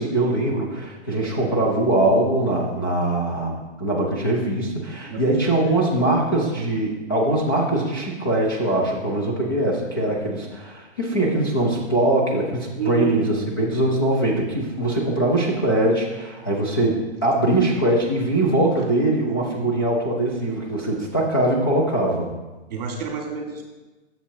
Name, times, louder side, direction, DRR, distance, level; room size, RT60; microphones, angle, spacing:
voice 1, 0.0-22.3, right 1 dB, 20° left, -4 dB, 0.5 m, -22 dB
voice 2, 5.0-5.5 12.8-13.2 22.7-23.6, right 7 dB, 35° right, 2 dB, 1.5 m, -28 dB
9.7 x 7.2 x 2.7 m, 1.1 s
hypercardioid pair, 180°, 34 cm